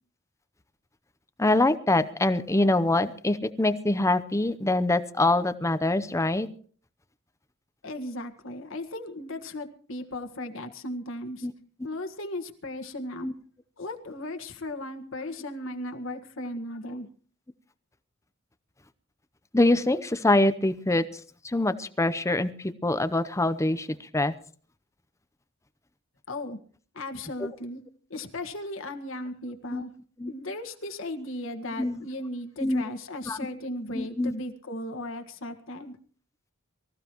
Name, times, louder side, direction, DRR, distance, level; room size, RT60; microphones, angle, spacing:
voice 1, 1.4-6.5 11.4-11.5 13.2-13.3 19.5-21.0 21.4-24.3 29.7-29.8 30.2-30.3 31.8-32.0 32.6-32.8 33.3-33.4 33.9-34.3, left 2 dB, 15° left, 13 dB, 0.7 m, -24 dB
voice 2, 7.8-11.5 11.8-13.3 13.8-17.1 26.3-26.6 26.9-27.8 28.1-29.9 30.3-36.0, left 1 dB, 70° left, 5 dB, 1.7 m, -36 dB
24.5 x 15.0 x 3.0 m, 0.44 s
head